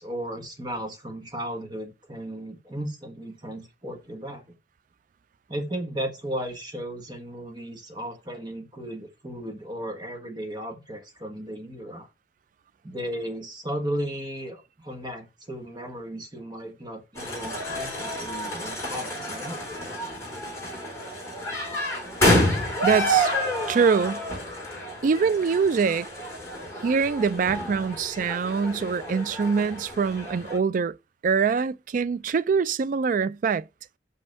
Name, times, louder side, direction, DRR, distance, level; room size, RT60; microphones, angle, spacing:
voice 1, 0.0-4.4 5.5-12.1 12.8-19.6, right 1 dB, 25° right, 1.5 m, -35 dB
sound 1, 17.1-30.6, equal, 15° left, 3.6 m, -29 dB
voice 2, 22.8-23.3 23.7-24.2 25.0-26.1 26.8-31.0 31.2-33.6, right 5 dB, 45° right, 0.3 m, -24 dB
5.5 x 5.2 x 5.3 m
head